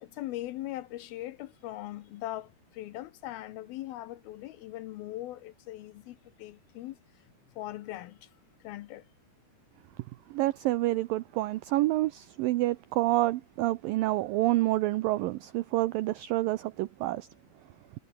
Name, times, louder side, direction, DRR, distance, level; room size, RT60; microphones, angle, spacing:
voice 1, 0.0-7.0 7.6-8.3 8.6-9.0, left 15 dB, 80° left, 2.4 m, -40 dB
voice 2, 10.3-17.3, right 17 dB, 85° right, 2.0 m, -28 dB
omnidirectional pair, 4.9 m